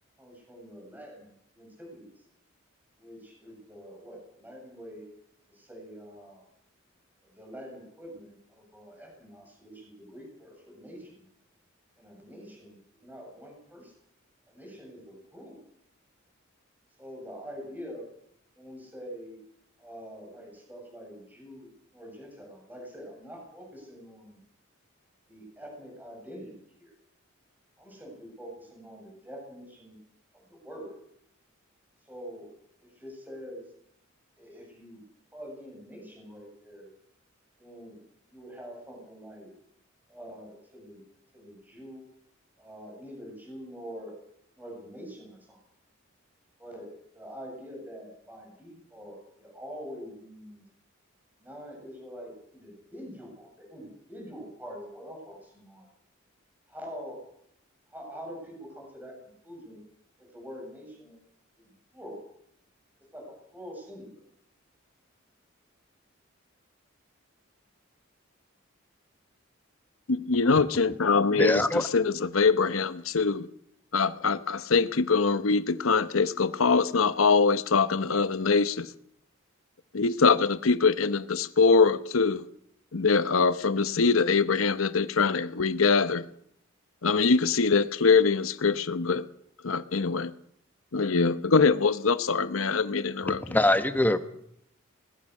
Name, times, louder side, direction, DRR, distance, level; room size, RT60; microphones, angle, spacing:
voice 1, 0.2-2.3 3.0-5.0 5.5-6.5 7.2-11.3 12.0-13.9 14.5-15.6 17.0-18.0 18.6-19.4 19.8-24.4 25.3-26.9 27.8-30.0 30.3-31.0 32.0-32.5 32.8-33.7 34.4-35.0 35.3-36.9 37.6-38.0 38.3-39.5 40.1-41.0 41.3-42.0 42.6-44.1 44.6-45.6 46.6-50.6 51.4-55.9 56.7-57.2 57.9-59.8 60.2-61.2 61.6-62.2 63.1-64.1, equal, 10° right, 7.6 m, -45 dB
voice 2, 70.1-73.5 73.9-78.9 79.9-82.5 82.9-86.2 87.0-89.3 89.6-90.3 90.9-93.4, left 4 dB, 80° left, 0.9 m, -23 dB
voice 3, 71.4-71.8 93.5-94.3, left 1 dB, 10° left, 1.3 m, -23 dB
21.5 x 19.5 x 6.5 m
head